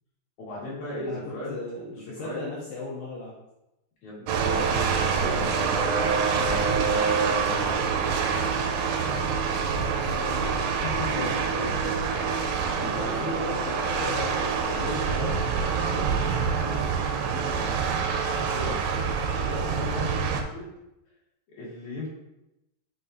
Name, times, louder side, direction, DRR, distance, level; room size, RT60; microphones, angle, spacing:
voice 1, 0.4-1.5 2.1-2.4 4.0-5.9 6.2-7.3 10.8-11.4 12.5-13.8 14.6-17.7 18.0-20.7 21.5-22.1, left 1 dB, 50° left, -6 dB, 3.1 m, -37 dB
voice 2, 1.5-3.3 9.1-10.6 11.0-11.9 12.8-14.4, left 3 dB, 70° left, -5 dB, 2.2 m, -37 dB
sound 1, 4.3-20.4, right 5 dB, 90° right, 2.8 m, -26 dB
7.4 x 6.0 x 2.7 m, 0.92 s
omnidirectional pair, 4.7 m